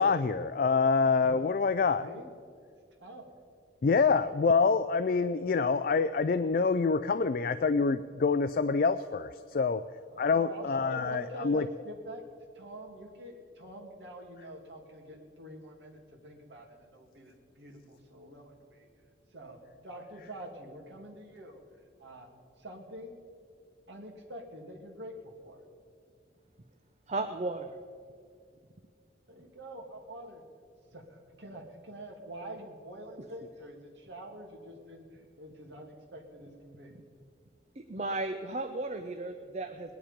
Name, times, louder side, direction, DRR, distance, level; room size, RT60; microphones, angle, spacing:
voice 1, 0.0-2.1 3.8-9.8 10.2-11.7, left 4 dB, 50° left, 11 dB, 0.4 m, -26 dB
voice 2, 2.0-2.3 3.0-3.3 10.1-12.2 12.5-18.9 19.3-19.6 19.8-21.6 22.0-22.3 22.6-23.2 23.9-25.6 29.3-30.4 30.9-36.9, right 1 dB, 70° right, 1 dB, 2.3 m, -46 dB
voice 3, 27.1-27.7 37.8-39.9, right 2 dB, 35° right, 7 dB, 0.6 m, -34 dB
20.0 x 10.5 x 5.1 m, 2.2 s
head